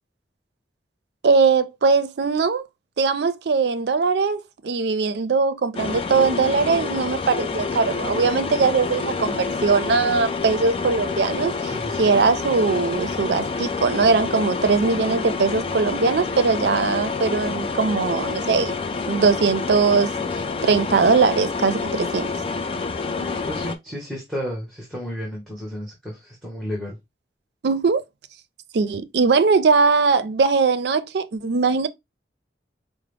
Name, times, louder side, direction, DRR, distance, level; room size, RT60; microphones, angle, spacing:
voice 1, 1.2-2.6 3.0-11.7 12.0-18.7 19.1-20.1 20.6-22.3 27.6-28.0 28.7-31.9, right 4 dB, 70° right, 0.4 m, -20 dB
sound 1, 5.7-23.7, left 4 dB, 30° left, 0.4 m, -28 dB
voice 2, 11.7-12.1 23.2-27.0, equal, ahead, 1.1 m, -32 dB
4.8 x 2.0 x 3.3 m
head